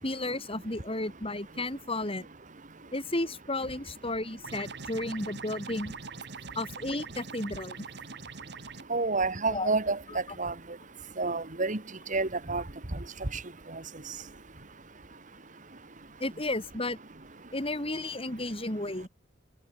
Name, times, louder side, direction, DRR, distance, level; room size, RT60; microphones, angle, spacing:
voice 1, 0.0-2.3 2.9-5.9 6.6-7.9 9.5-9.7 10.1-10.2 16.2-17.0 17.5-19.1, left 2 dB, 30° left, 5.8 m, -33 dB
sound 1, 4.4-8.8, right 4 dB, 60° right, 2.9 m, -43 dB
voice 2, 8.9-10.5 11.2-11.8 12.1-12.6 13.3-13.4, right 3 dB, 40° right, 1.9 m, -29 dB
head